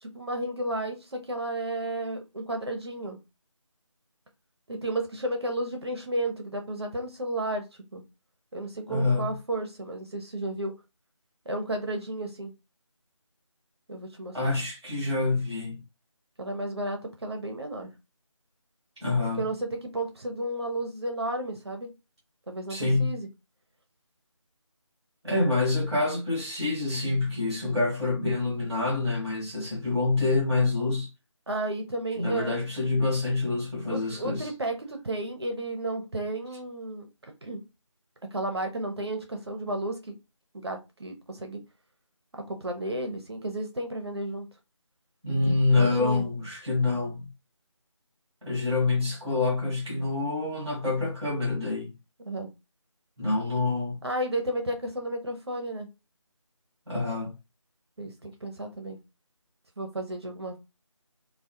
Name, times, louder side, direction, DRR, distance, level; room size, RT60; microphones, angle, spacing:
voice 1, 0.0-3.2 4.7-8.0 8.5-10.7 11.5-12.5 13.9-14.4 16.4-17.9 19.4-21.9 22.5-23.3 31.5-32.6 33.9-37.1 37.4-37.6 38.3-40.1 40.5-41.6 42.4-44.5 45.7-46.2 52.3-52.5 54.0-55.9 58.0-59.0 59.8-60.6, right 1 dB, 55° right, 0.5 m, -33 dB
voice 2, 8.9-9.3 14.3-15.8 19.0-19.4 22.7-23.1 25.2-31.1 32.1-34.5 45.2-47.3 48.4-51.9 53.2-54.0 56.9-57.3, left 3 dB, ahead, 0.8 m, -26 dB
2.2 x 2.1 x 2.7 m
figure-of-eight pair, 165°, 17 cm